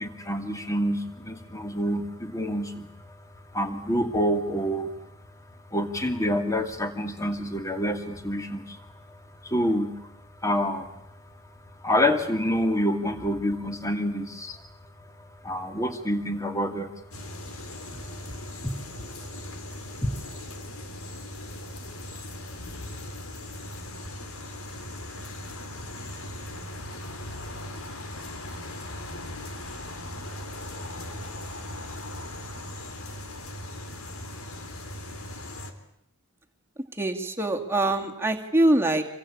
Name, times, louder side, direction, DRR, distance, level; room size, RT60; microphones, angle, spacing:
voice 1, 0.0-2.9 3.5-4.9 5.7-9.2 9.4-10.1 10.4-10.9 11.8-14.6 15.4-16.9 18.6-19.1 20.0-20.1, equal, 15° left, 6 dB, 2.6 m, -27 dB
sound 1, 17.1-35.7, left 1 dB, 80° left, 3.3 m, -39 dB
voice 2, 37.0-39.0, right 1 dB, 10° right, 3 dB, 2.4 m, -23 dB
27.0 x 23.5 x 8.7 m, 0.74 s
head